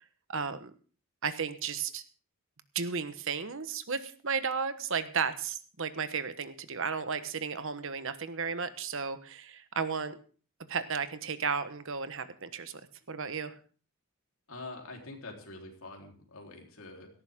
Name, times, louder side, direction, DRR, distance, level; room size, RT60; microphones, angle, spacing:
voice 1, 0.3-0.7 1.2-2.0 2.7-10.2 10.7-12.7 13.1-13.6, right 5 dB, 60° right, 11 dB, 1.2 m, -34 dB
voice 2, 14.5-17.1, left 2 dB, 65° left, 1 dB, 3.8 m, -45 dB
17.5 x 14.0 x 3.7 m, 0.40 s
head